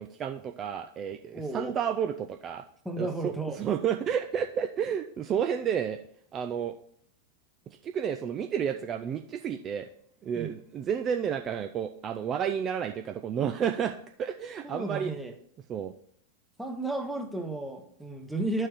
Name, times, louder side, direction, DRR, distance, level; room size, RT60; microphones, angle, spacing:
voice 1, 0.0-2.6 3.0-6.0 6.3-6.8 7.8-9.9 10.2-15.1 15.7-15.9, right 8 dB, 30° right, 6 dB, 0.4 m, -31 dB
voice 2, 1.3-1.7 2.8-3.6 10.3-10.6 14.6-15.3 16.6-18.7, right 2 dB, ahead, 3 dB, 0.9 m, -33 dB
12.0 x 4.5 x 3.0 m, 0.68 s
figure-of-eight pair, 90°, 0 cm